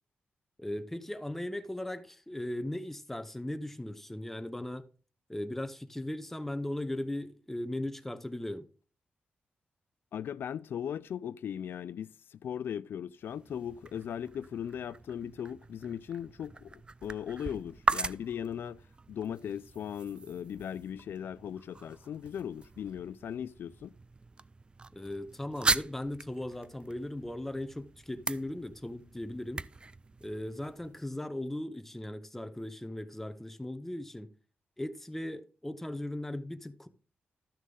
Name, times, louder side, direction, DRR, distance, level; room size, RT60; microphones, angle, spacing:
voice 1, 0.6-4.8 5.3-8.7 24.9-29.6 30.2-34.3 34.8-36.9, left 1 dB, 5° left, 0.8 m, -38 dB
voice 2, 10.1-23.9, left 9 dB, 80° left, 0.4 m, -38 dB
sound 1, 13.2-31.0, right 3 dB, 25° right, 0.4 m, -39 dB
12.5 x 6.4 x 3.9 m
cardioid pair, 95°, 4 cm